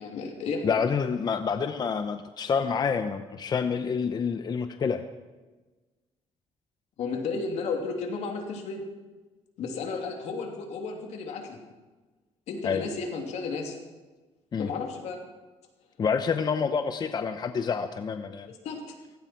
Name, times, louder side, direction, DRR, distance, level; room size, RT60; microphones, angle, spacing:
voice 1, 0.0-0.8 7.0-8.8 9.6-11.6 12.5-13.8 14.6-15.2 18.5-19.0, left 4 dB, 80° left, 2 dB, 3.0 m, -33 dB
voice 2, 0.6-5.0 12.6-12.8 14.5-14.7 16.0-18.5, left 6 dB, 40° left, 9 dB, 0.7 m, -28 dB
17.0 x 16.5 x 4.5 m, 1.2 s
cardioid pair, 120°, 11 cm